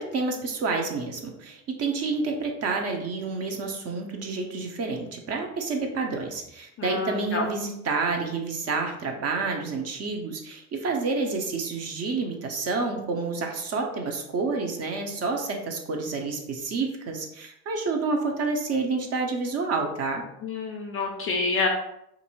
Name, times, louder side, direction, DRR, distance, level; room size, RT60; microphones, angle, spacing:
voice 1, 0.0-20.2, right 4 dB, 35° right, 3 dB, 0.6 m, -29 dB
voice 2, 6.8-7.5 20.4-21.7, left 3 dB, 30° left, 2 dB, 0.4 m, -28 dB
2.6 x 2.6 x 2.9 m, 0.80 s
hypercardioid pair, 75°, 46 cm